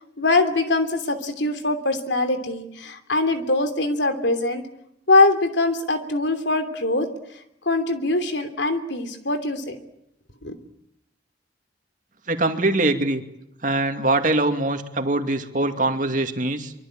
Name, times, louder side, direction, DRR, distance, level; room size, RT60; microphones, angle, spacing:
voice 1, 0.2-4.6 5.1-7.1 7.6-9.8 10.4-10.5, left 2 dB, 80° left, 8 dB, 3.0 m, -22 dB
voice 2, 12.3-13.2 13.6-16.7, right 2 dB, 45° right, 6 dB, 2.4 m, -23 dB
24.5 x 24.5 x 8.9 m, 0.80 s
head